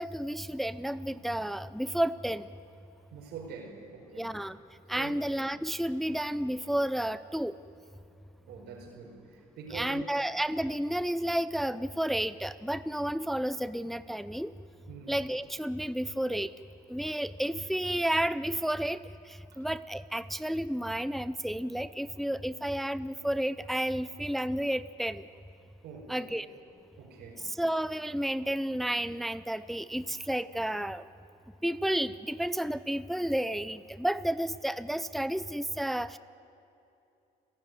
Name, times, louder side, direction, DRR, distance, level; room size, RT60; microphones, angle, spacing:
voice 1, 0.0-2.5 4.2-4.6 4.9-7.6 9.7-14.5 15.1-16.5 16.9-19.0 19.3-25.2 26.1-26.5 27.4-31.0 31.6-36.2, right 1 dB, ahead, 14 dB, 0.5 m, -31 dB
voice 2, 3.1-4.3 4.9-5.2 8.5-10.2 14.9-15.2 19.5-19.7 25.8-26.4 27.0-27.5, right 5 dB, 80° right, -1 dB, 5.1 m, -45 dB
29.5 x 15.5 x 9.4 m, 2.7 s
cardioid pair, 110°, 17 cm